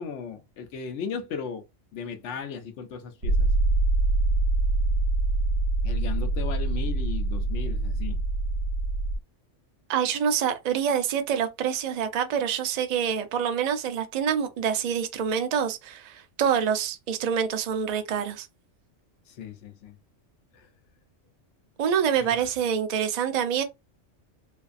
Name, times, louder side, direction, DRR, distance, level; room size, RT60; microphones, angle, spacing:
voice 1, 0.0-1.6 1.9-3.5 5.8-8.2 19.3-20.0 20.5-20.7 22.2-22.4, left 6 dB, 75° left, 0.9 m, -36 dB
sound 1, 3.2-9.2, right 2 dB, 65° right, 1.0 m, -25 dB
voice 2, 9.9-18.5 21.8-23.6, right 8 dB, 85° right, 0.3 m, -26 dB
2.6 x 2.3 x 2.4 m
omnidirectional pair, 1.3 m